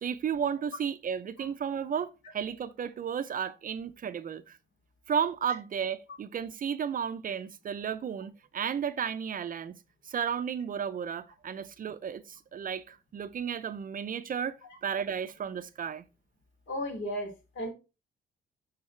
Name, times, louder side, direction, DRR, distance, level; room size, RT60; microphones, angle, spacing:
voice 1, 0.0-4.6 5.1-9.8 10.0-14.6 14.8-16.0, right 7 dB, 45° right, 0.5 m, -33 dB
voice 2, 16.7-17.7, equal, 65° left, 3.2 m, -35 dB
11.5 x 4.0 x 3.2 m
cardioid pair, 90°, 20 cm